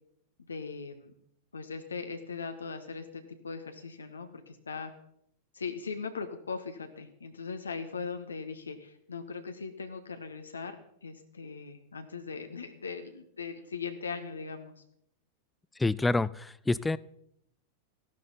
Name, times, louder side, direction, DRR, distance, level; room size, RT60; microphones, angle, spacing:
voice 1, 0.5-1.1 1.5-4.9 5.5-14.7, left 5 dB, 75° left, 7 dB, 1.2 m, -39 dB
voice 2, 15.8-17.0, left 2 dB, 10° left, 21 dB, 0.4 m, -27 dB
15.0 x 12.0 x 4.1 m, 0.74 s
figure-of-eight pair, 90°, 0 cm